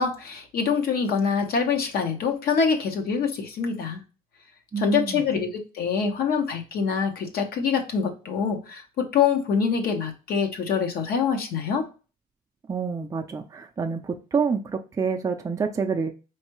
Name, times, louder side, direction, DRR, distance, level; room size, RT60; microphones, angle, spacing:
voice 1, 0.0-4.0 4.8-11.9, left 6 dB, 65° left, 4 dB, 0.9 m, -25 dB
voice 2, 4.7-5.2 12.7-16.1, right 5 dB, 20° right, 3 dB, 0.4 m, -27 dB
4.4 x 3.2 x 3.0 m, 0.33 s
cardioid pair, 110°, 17 cm